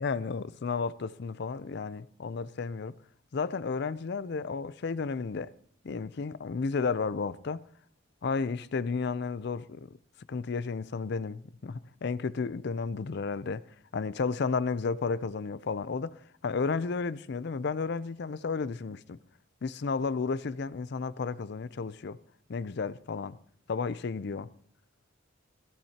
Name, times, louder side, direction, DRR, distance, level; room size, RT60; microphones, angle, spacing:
voice 1, 0.0-2.9 3.3-5.5 5.8-7.6 8.2-9.9 10.3-13.6 13.9-19.2 19.6-22.2 22.5-23.4 23.7-24.5, left 4 dB, 60° left, 0.5 m, -32 dB
17.5 x 15.5 x 2.9 m
head